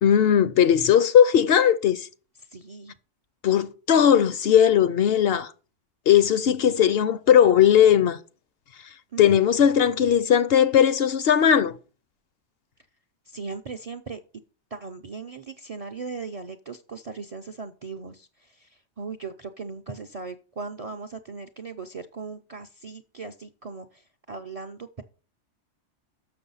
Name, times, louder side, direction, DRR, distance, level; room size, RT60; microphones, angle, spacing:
voice 1, 0.0-2.1 3.4-5.5 6.1-8.2 9.2-11.8, left 9 dB, 65° left, 0.7 m, -18 dB
voice 2, 2.5-2.9 9.1-9.4 9.9-10.1 13.3-14.2 14.7-25.0, right 4 dB, 50° right, 0.4 m, -38 dB
6.8 x 6.2 x 5.5 m
omnidirectional pair, 1.2 m